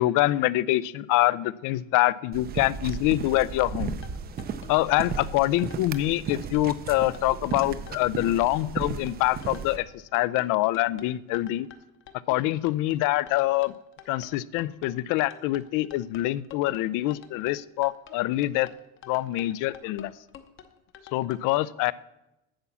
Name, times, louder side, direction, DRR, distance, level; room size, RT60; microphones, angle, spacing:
voice 1, 0.0-4.0 4.7-11.7 12.3-13.7 14.1-18.7 19.1-20.1 21.1-21.9, left 17 dB, 65° left, 19 dB, 0.5 m, -25 dB
sound 1, 2.3-9.8, right 6 dB, 30° right, 0.5 m, -35 dB
sound 2, 3.9-21.4, left 8 dB, 35° left, 0.8 m, -48 dB
8.9 x 7.2 x 6.9 m, 0.91 s
cardioid pair, 170°, 34 cm